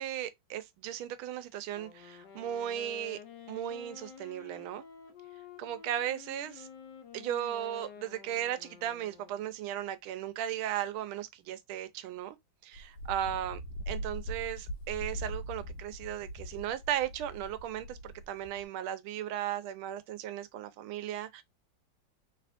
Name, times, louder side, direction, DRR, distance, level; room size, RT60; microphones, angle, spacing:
voice 1, 0.0-3.2 3.5-4.8 5.6-6.7 7.1-12.4 12.6-13.6 13.9-21.4, right 11 dB, 85° right, 1.4 m, -36 dB
Wind instrument woodwind instrument, 1.7-9.6, left 7 dB, 65° left, 1.2 m, -51 dB
Wind, 12.7-18.7, equal, 90° left, 1.5 m, -41 dB
3.3 x 3.1 x 2.4 m
omnidirectional pair, 2.3 m